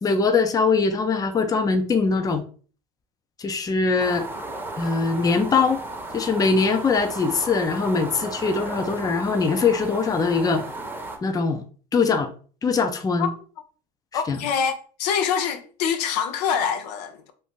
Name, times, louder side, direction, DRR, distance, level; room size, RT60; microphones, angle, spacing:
voice 1, 0.0-2.4 3.4-4.2 4.8-5.8 6.1-10.7 11.2-11.6 11.9-12.3 12.6-13.3 14.1-14.4, left 4 dB, 20° left, 0.5 m, -22 dB
sound 1, 4.0-11.2, right 2 dB, 10° right, 0.8 m, -35 dB
voice 2, 14.1-17.3, left 7 dB, 80° left, 0.6 m, -25 dB
2.6 x 2.6 x 3.6 m
supercardioid pair, 100°, 20 cm